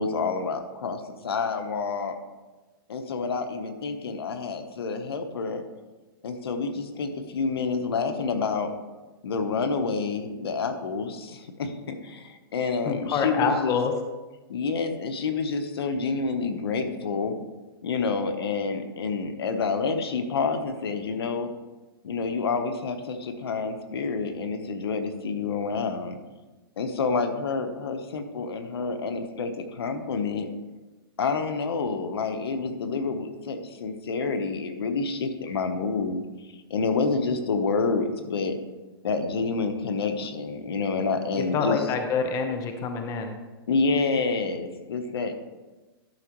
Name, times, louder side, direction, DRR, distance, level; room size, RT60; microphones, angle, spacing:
voice 1, 0.0-2.2 2.9-5.6 6.2-8.7 9.2-13.8 14.5-17.3 17.8-21.5 22.0-26.2 26.8-30.5 31.2-38.6 39.0-41.8 43.7-45.3, left 4 dB, 85° left, 8 dB, 0.9 m, -28 dB
voice 2, 12.9-13.9 41.5-43.4, left 5 dB, 25° left, 5 dB, 0.9 m, -26 dB
12.0 x 6.0 x 3.0 m, 1.2 s
hypercardioid pair, 140°, 13 cm